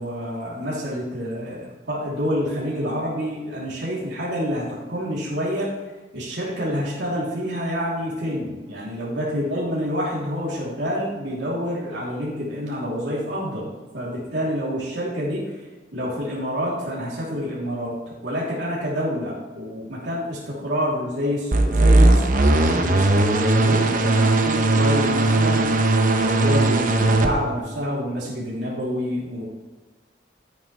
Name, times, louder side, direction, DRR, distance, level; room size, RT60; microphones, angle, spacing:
voice 1, 0.0-5.7 6.1-13.7 13.9-15.6 15.9-29.4, equal, 75° right, -6 dB, 3.0 m, -27 dB
sound 1, 21.5-27.3, right 2 dB, 45° right, 0.9 m, -18 dB
11.5 x 9.4 x 3.2 m, 1.3 s
head